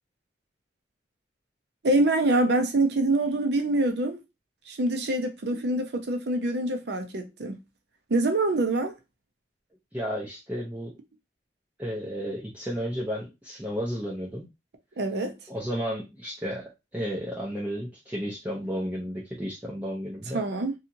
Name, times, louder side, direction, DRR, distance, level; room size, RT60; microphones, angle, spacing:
voice 1, 1.8-4.2 4.7-7.6 8.1-8.9 15.0-15.3 20.3-20.7, right 2 dB, 65° right, 0.6 m, -25 dB
voice 2, 9.9-10.9 11.8-14.5 15.5-20.4, equal, 10° right, 0.6 m, -33 dB
2.9 x 2.4 x 2.6 m
head